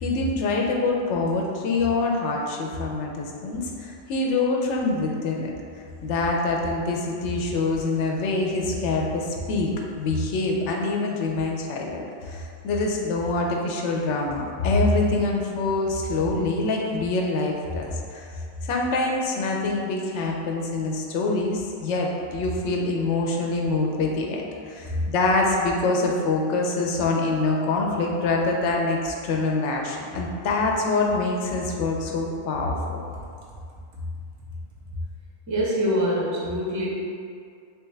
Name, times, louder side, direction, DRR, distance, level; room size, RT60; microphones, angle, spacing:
voice 1, 0.0-5.5 6.0-18.3 18.6-32.8, left 3 dB, 75° left, 0 dB, 0.9 m, -25 dB
voice 2, 35.5-36.9, equal, 25° right, -5 dB, 0.4 m, -24 dB
3.4 x 3.2 x 3.1 m, 2.3 s
omnidirectional pair, 1.2 m